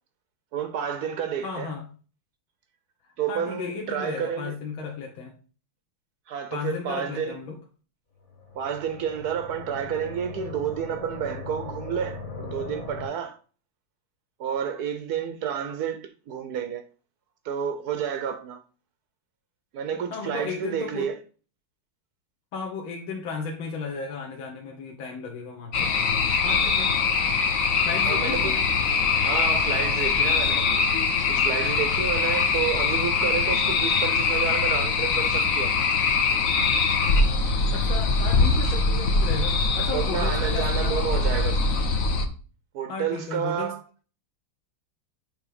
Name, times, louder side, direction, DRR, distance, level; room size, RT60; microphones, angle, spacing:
voice 1, 0.5-1.7 3.2-4.5 6.3-7.4 8.5-13.4 14.4-16.8 17.4-18.6 19.7-21.2 28.0-28.6 29.2-30.8 31.3-35.9 39.9-41.6 42.7-43.8, right 8 dB, 70° right, 0.9 m, -30 dB
voice 2, 1.4-1.9 3.3-5.3 6.5-7.6 20.1-21.1 22.5-25.9 26.4-26.9 27.8-28.6 37.4-41.2 42.9-43.7, left 4 dB, 75° left, 1.9 m, -34 dB
sound 1, 8.2-13.1, left 4 dB, 35° left, 1.6 m, -39 dB
sound 2, 25.7-42.2, left 4 dB, 55° left, 0.9 m, -23 dB
7.3 x 3.2 x 5.0 m
omnidirectional pair, 2.3 m